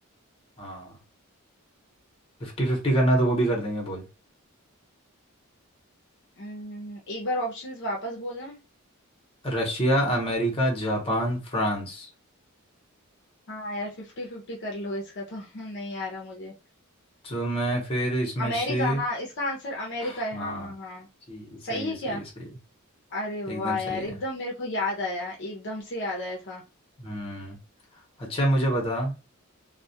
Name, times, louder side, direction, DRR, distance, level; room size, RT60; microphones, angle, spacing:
voice 1, 0.6-0.9 2.4-4.0 9.4-12.1 17.2-19.0 20.0-20.7 21.3-22.2 23.5-24.1 27.0-27.6 28.2-29.1, right 1 dB, 25° left, 0.8 m, -27 dB
voice 2, 6.4-8.6 13.5-16.5 18.4-21.1 21.6-22.2 23.1-26.6, left 1 dB, 55° left, 0.6 m, -32 dB
2.3 x 2.1 x 2.7 m
head